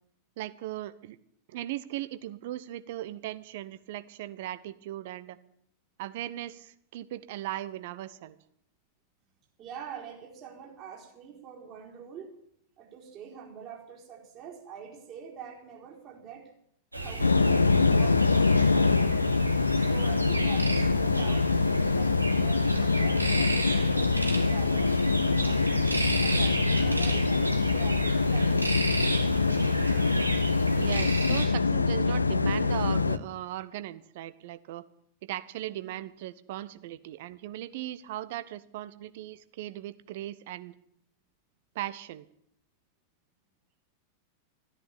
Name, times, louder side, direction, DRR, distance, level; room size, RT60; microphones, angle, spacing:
voice 1, 0.4-1.2 1.5-5.4 6.0-8.4 30.8-34.8 35.2-40.7 41.7-42.3, right 14 dB, 50° right, 14 dB, 0.9 m, -38 dB
voice 2, 9.6-12.3 12.8-16.5 17.0-19.3 19.8-25.0 25.4-30.2 35.7-36.0, right 7 dB, 35° right, -1 dB, 4.3 m, -45 dB
sound 1, 16.9-31.5, right 2 dB, 85° right, 2.1 m, -34 dB
sound 2, 17.2-33.2, left 3 dB, 80° left, 0.6 m, -24 dB
14.0 x 10.5 x 8.8 m, 0.70 s
figure-of-eight pair, 90°, 0 cm